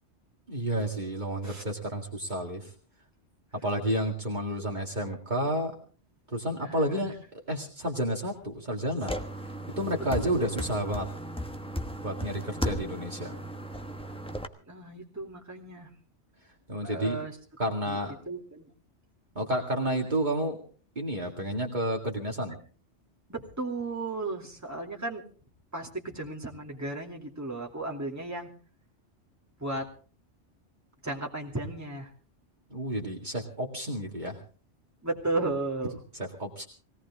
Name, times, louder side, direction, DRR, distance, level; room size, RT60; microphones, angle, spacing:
voice 1, 0.5-2.7 3.6-5.7 6.3-7.1 7.5-9.1 9.8-11.1 12.0-13.4 16.7-17.2 17.6-18.1 19.4-20.6 21.0-22.6 32.7-34.4 36.1-36.7, equal, 40° right, 0 dB, 2.3 m, -30 dB
voice 2, 6.5-7.1 10.2-10.4 14.7-15.9 16.8-17.4 17.9-18.0 18.3-18.6 19.9-20.0 23.3-25.2 25.7-28.5 29.6-29.9 31.0-32.1 35.0-36.0, right 2 dB, 15° right, -1 dB, 2.7 m, -34 dB
sound 1, 9.0-14.5, equal, 5° left, 1.1 m, -36 dB
20.0 x 17.5 x 3.6 m, 0.40 s
omnidirectional pair, 1.2 m